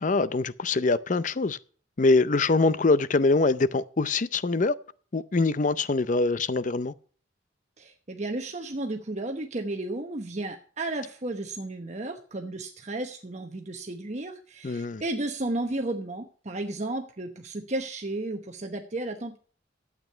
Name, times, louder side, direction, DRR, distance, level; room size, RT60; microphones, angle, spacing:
voice 1, 0.0-1.6 2.0-4.7 5.1-6.9 14.6-15.0, left 3 dB, 45° left, 0.5 m, -24 dB
voice 2, 7.8-19.4, right 2 dB, 40° right, 1.0 m, -33 dB
12.5 x 8.4 x 5.6 m
head